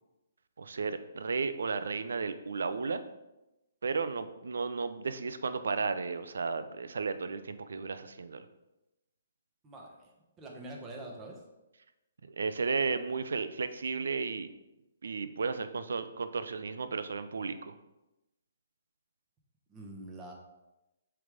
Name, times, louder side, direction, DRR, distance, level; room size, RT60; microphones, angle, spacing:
voice 1, 0.6-3.0 3.8-8.5 12.3-14.5 15.0-17.7, right 4 dB, 75° right, 11 dB, 0.5 m, -34 dB
voice 2, 9.6-10.1 10.4-11.4 19.7-20.3, right 1 dB, 20° right, 0 dB, 1.2 m, -45 dB
7.7 x 3.4 x 3.7 m, 0.97 s
hypercardioid pair, 140°, 0 cm